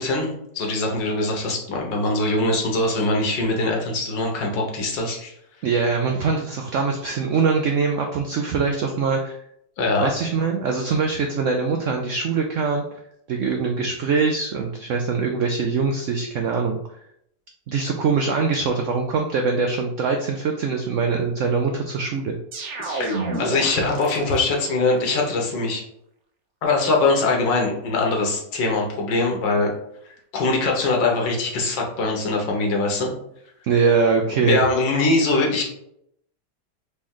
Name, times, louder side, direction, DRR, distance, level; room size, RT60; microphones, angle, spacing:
voice 1, 0.0-5.3 9.8-10.1 22.9-23.1 23.4-25.8 26.6-29.7 30.3-33.1 34.4-35.7, left 2 dB, 90° left, 0 dB, 1.7 m, -22 dB
voice 2, 5.6-9.4 10.0-12.8 13.3-16.8 17.7-22.4 33.6-34.6, right 5 dB, 85° right, 3 dB, 0.6 m, -23 dB
sound 1, 22.5-24.8, right 2 dB, 50° right, 0.9 m, -29 dB
4.1 x 3.1 x 3.7 m, 0.75 s
omnidirectional pair, 1.9 m